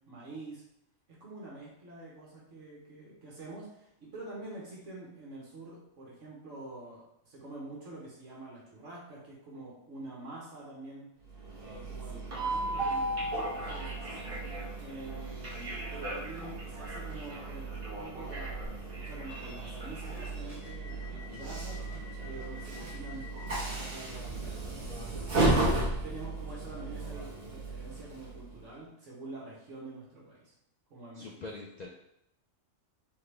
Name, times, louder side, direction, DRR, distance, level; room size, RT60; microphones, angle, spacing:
voice 1, 0.1-0.6 1.1-11.1 11.6-14.3 14.8-21.8 22.2-30.5 30.9-31.3, right 2 dB, 65° right, -5 dB, 1.5 m, -46 dB
Train, 11.3-28.6, right 2 dB, 45° right, 1.2 m, -35 dB
voice 2, 21.3-21.7 31.1-31.9, left 3 dB, 65° left, -1 dB, 0.4 m, -44 dB
4.0 x 3.8 x 3.3 m, 0.80 s
omnidirectional pair, 1.3 m